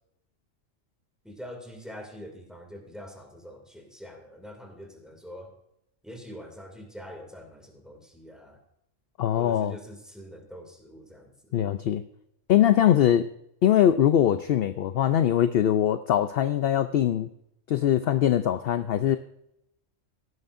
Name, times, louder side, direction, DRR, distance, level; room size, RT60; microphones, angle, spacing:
voice 1, 1.2-5.5 6.0-8.6 9.4-11.7 19.1-19.2, equal, ahead, 2 dB, 2.4 m, -44 dB
voice 2, 9.2-9.7 11.5-12.0 12.5-13.3 13.6-17.3 17.7-19.2, left 10 dB, 60° left, 11 dB, 0.7 m, -22 dB
17.0 x 10.5 x 2.6 m, 0.79 s
omnidirectional pair, 1.3 m